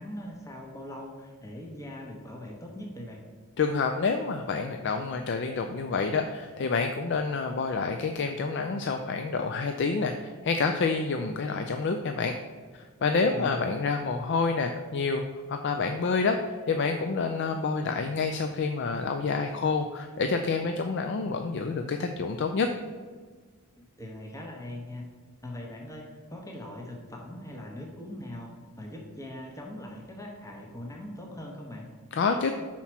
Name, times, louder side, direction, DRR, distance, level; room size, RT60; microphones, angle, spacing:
voice 1, 0.0-3.2 13.3-13.7 24.0-25.0 25.4-31.9, left 1 dB, 15° left, 0 dB, 1.0 m, -41 dB
voice 2, 3.6-12.3 12.7-22.7 32.1-32.5, left 4 dB, 50° left, 5 dB, 0.4 m, -28 dB
5.7 x 4.4 x 5.9 m, 1.5 s
head